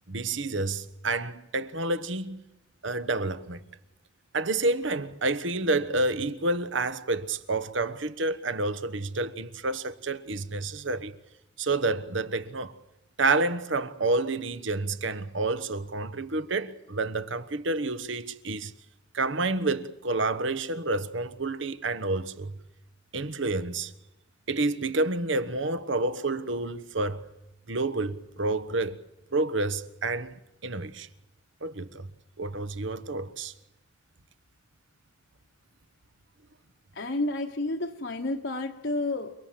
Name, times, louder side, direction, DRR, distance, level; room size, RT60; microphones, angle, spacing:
voice 1, 0.1-2.4 2.8-3.6 4.3-11.1 11.6-12.8 13.2-18.7 19.1-22.6 23.1-23.9 24.5-27.3 27.7-29.0 29.3-30.3 30.6-31.1 31.6-32.1 32.4-33.5, right 2 dB, 70° right, 1.3 m, -29 dB
voice 2, 36.9-39.3, left 2 dB, 65° left, 1.2 m, -30 dB
29.5 x 19.5 x 7.6 m
head